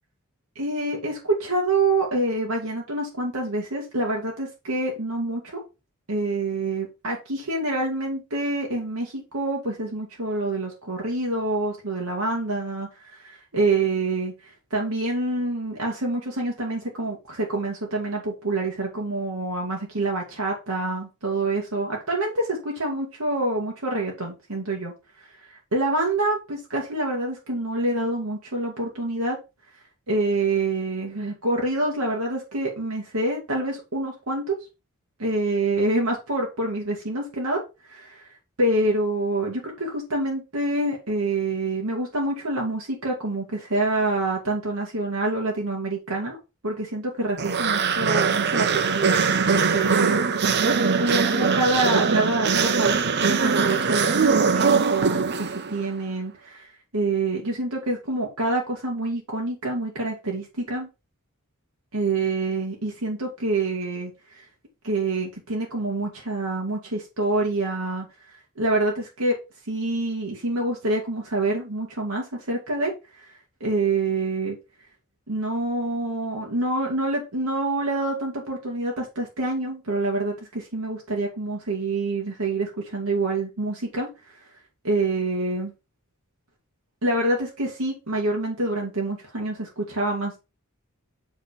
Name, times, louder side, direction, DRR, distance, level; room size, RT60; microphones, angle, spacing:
voice 1, 0.6-5.6 6.1-24.9 25.5-29.4 30.1-34.6 35.2-37.6 37.9-38.3 38.6-46.4 46.6-60.9 61.9-64.5 64.8-68.1 68.6-69.4 69.7-73.3 73.6-74.6 75.3-84.1 84.4-84.5 84.8-85.7 87.0-90.4, right 2 dB, 80° right, -1 dB, 2.2 m, -27 dB
sound 1, 47.4-55.8, right 5 dB, 50° right, 0.7 m, -22 dB
7.4 x 3.9 x 5.2 m, 0.27 s
head